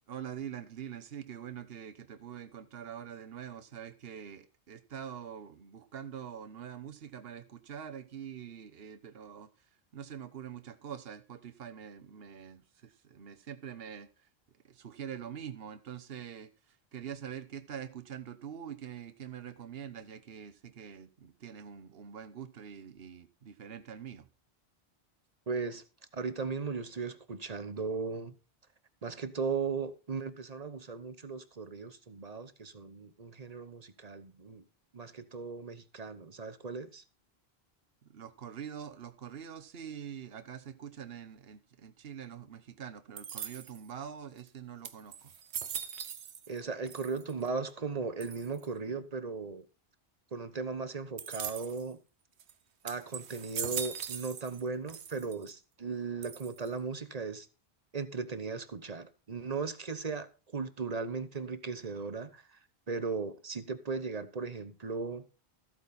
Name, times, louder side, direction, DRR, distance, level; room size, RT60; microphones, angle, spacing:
voice 1, 0.1-14.3 14.6-24.3 38.0-45.3, right 8 dB, 65° right, 1.2 m, -45 dB
voice 2, 25.5-25.8 26.1-28.4 29.0-34.6 34.9-37.0 46.5-49.7 50.3-52.0 52.8-57.5 57.9-60.3 60.5-62.6 62.9-65.2, right 4 dB, 40° right, 1.0 m, -37 dB
sound 1, 43.2-43.9 44.5-44.6 44.8-46.6 46.9-47.5 48.2-48.7 51.2-51.9 52.4-52.5 52.9-54.6 54.9-55.5 56.2-56.8, right 8 dB, 90° right, 1.1 m, -40 dB
14.0 x 8.5 x 4.2 m
omnidirectional pair, 1.1 m